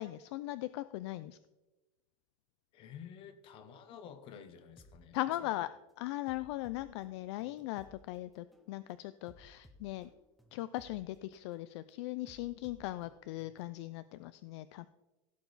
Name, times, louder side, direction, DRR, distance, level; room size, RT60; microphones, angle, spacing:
voice 1, 0.0-1.4 5.1-5.7 6.0-10.1 10.5-14.9, left 16 dB, 55° left, 15 dB, 0.4 m, -39 dB
voice 2, 2.7-5.5, left 8 dB, 30° left, 11 dB, 0.9 m, -51 dB
sound 1, 4.8-5.0 5.5-5.7 6.3-8.0 8.5-8.7 9.3-11.0 11.5-11.7 12.3-13.8, equal, ahead, 0.7 m, -60 dB
16.5 x 6.9 x 4.0 m, 1.1 s
supercardioid pair, 175°, 18 cm